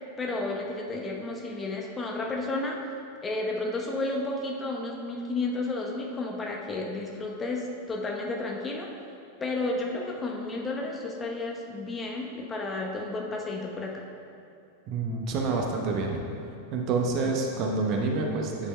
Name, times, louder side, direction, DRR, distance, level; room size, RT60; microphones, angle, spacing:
voice 1, 0.2-2.8 3.2-8.9 9.4-14.0 17.2-17.3, left 2 dB, 20° left, -1 dB, 0.9 m, -32 dB
voice 2, 14.9-16.2 16.7-18.7, right 3 dB, 40° right, 1 dB, 0.9 m, -28 dB
9.8 x 8.3 x 2.2 m, 2.6 s
figure-of-eight pair, 90°, 0 cm